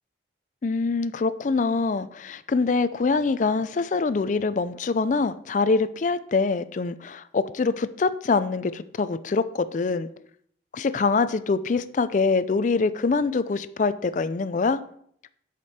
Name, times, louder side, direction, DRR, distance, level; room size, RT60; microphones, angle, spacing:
voice 1, 0.6-10.1 10.7-14.8, left 4 dB, 45° left, 14 dB, 0.4 m, -24 dB
9.7 x 5.1 x 4.2 m, 0.66 s
head